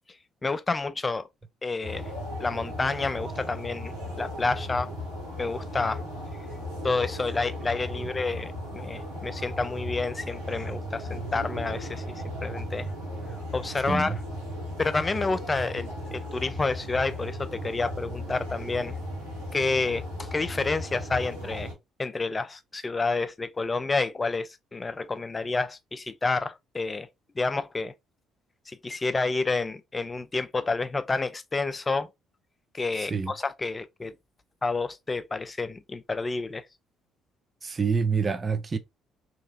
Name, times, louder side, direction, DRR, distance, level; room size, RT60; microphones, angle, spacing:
voice 1, 0.4-1.3 1.6-2.1 2.4-4.9 5.4-6.0 6.8-12.0 12.4-12.9 13.5-14.2 14.8-18.9 19.5-21.7 22.0-27.1 27.4-27.9 28.7-32.1 32.7-34.1 34.6-36.6, left 3 dB, 25° left, 0.4 m, -29 dB
sound 1, 1.8-21.7, left 1 dB, 85° right, 1.8 m, -36 dB
voice 2, 13.9-14.2 33.1-33.3 37.6-38.8, right 5 dB, 35° right, 0.5 m, -26 dB
3.0 x 2.7 x 2.6 m
hypercardioid pair, 50°, 0 cm